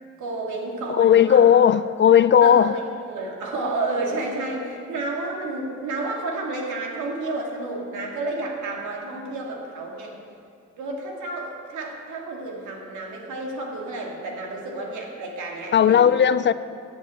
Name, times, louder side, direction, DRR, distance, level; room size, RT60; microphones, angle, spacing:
voice 1, 0.2-1.5 2.4-10.2 10.8-16.3, right 2 dB, 75° right, 0 dB, 2.5 m, -31 dB
voice 2, 0.9-2.7 15.7-16.5, left 9 dB, 40° left, 14 dB, 0.4 m, -16 dB
11.0 x 7.8 x 8.1 m, 2.4 s
cardioid pair, 90°, 30 cm